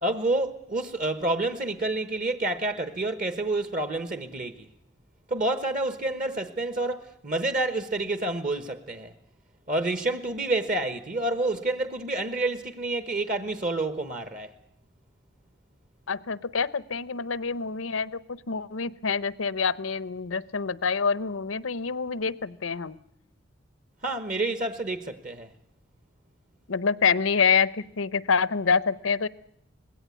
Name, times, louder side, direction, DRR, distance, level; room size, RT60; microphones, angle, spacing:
voice 1, 0.0-4.7 5.3-9.1 9.7-14.5 24.0-25.5, right 2 dB, 40° right, 1.1 m, -28 dB
voice 2, 16.1-23.0 26.7-29.3, left 5 dB, 85° left, 0.8 m, -26 dB
20.5 x 17.0 x 9.4 m
head